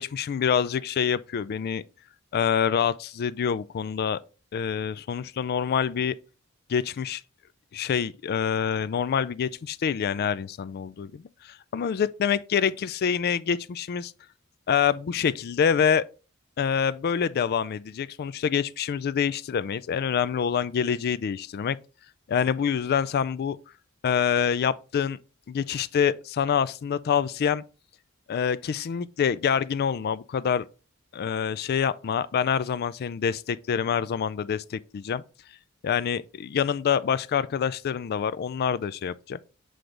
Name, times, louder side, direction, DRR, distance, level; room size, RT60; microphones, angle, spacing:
voice 1, 0.0-1.8 2.3-4.2 4.5-6.2 6.7-7.2 7.7-14.1 14.7-16.0 16.6-21.8 22.3-23.6 24.0-25.2 25.5-27.6 28.3-30.6 31.1-35.2 35.8-39.4, left 7 dB, 50° left, 0.3 m, -26 dB
7.7 x 3.3 x 3.8 m
head